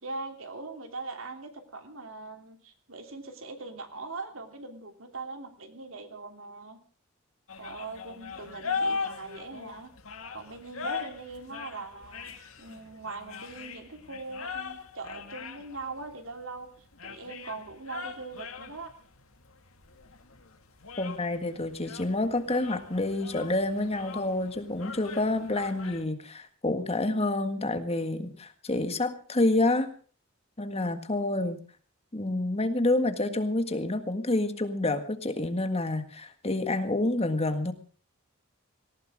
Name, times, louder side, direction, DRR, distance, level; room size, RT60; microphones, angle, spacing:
voice 1, 0.0-6.8 7.6-9.9 10.3-16.7 17.0-18.9, right 3 dB, 70° right, 5 dB, 3.1 m, -41 dB
sound 1, 7.5-26.0, left 5 dB, 80° left, 2.0 m, -40 dB
voice 2, 21.0-29.9 30.6-31.6 32.1-37.7, left 2 dB, 30° left, 8 dB, 1.7 m, -28 dB
18.5 x 18.5 x 3.6 m, 0.41 s
head